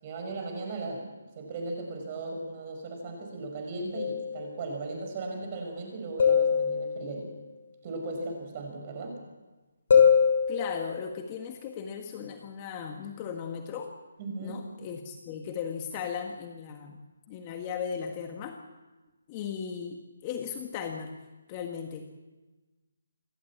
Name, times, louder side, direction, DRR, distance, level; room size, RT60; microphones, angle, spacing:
voice 1, 0.0-1.1 1.4-7.3 7.8-9.2 14.2-14.6, right 2 dB, 25° right, 3 dB, 6.0 m, -37 dB
sound 1, 3.9-4.6 6.2-7.3 9.9-11.2, left 7 dB, 45° left, 6.0 m, -23 dB
voice 2, 10.5-13.9 14.4-17.0 17.3-18.6 19.3-21.1 21.5-22.2, left 7 dB, 20° left, 4 dB, 1.5 m, -37 dB
27.5 x 12.5 x 8.7 m, 1.2 s
hypercardioid pair, 170°, 0 cm